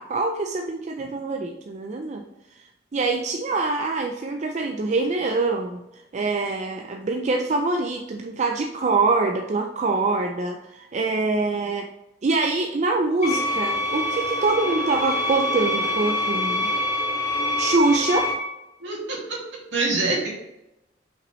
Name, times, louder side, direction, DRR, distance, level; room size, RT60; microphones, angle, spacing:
voice 1, 0.0-2.2 2.9-5.8 6.1-11.9 12.2-16.7 17.6-18.3, right 3 dB, 40° right, 3 dB, 0.4 m, -24 dB
sound 1, 13.2-18.3, left 1 dB, 40° left, 2.2 m, -25 dB
voice 2, 18.8-19.4 19.7-20.3, right 3 dB, 70° right, -3 dB, 2.2 m, -25 dB
5.9 x 5.2 x 3.1 m, 0.91 s
head